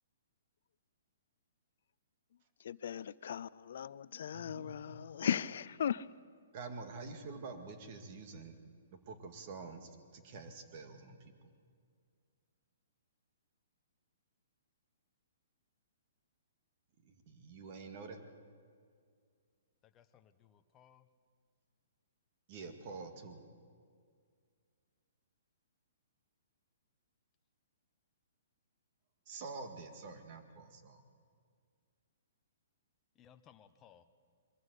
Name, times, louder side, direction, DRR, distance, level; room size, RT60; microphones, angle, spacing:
voice 1, 2.7-6.0, left 9 dB, 60° left, 19 dB, 0.5 m, -37 dB
voice 2, 4.3-5.3 6.5-8.6 8.9-11.5 17.0-18.2 22.5-23.4 29.3-31.0, right 4 dB, 35° right, 7 dB, 2.0 m, -48 dB
voice 3, 19.9-21.1 33.2-34.0, left 9 dB, 15° left, 8 dB, 0.8 m, -62 dB
22.5 x 14.0 x 8.3 m, 2.1 s
hypercardioid pair, 165°, 0 cm